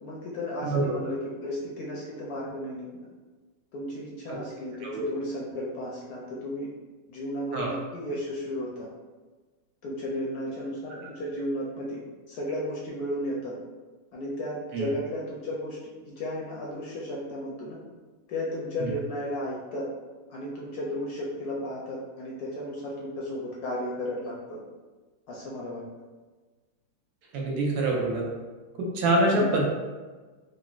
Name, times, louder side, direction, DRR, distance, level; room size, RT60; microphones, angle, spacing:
voice 1, 0.0-2.9 3.7-6.7 7.1-8.9 9.8-13.5 14.1-15.8 16.1-17.8 18.3-19.9 20.3-24.6 25.3-25.8 29.4-29.6, left 1 dB, 70° left, -4 dB, 0.9 m, -34 dB
voice 2, 27.3-28.2 28.8-29.6, right 2 dB, 70° right, -2 dB, 1.1 m, -25 dB
3.8 x 2.0 x 2.3 m, 1.3 s
omnidirectional pair, 1.9 m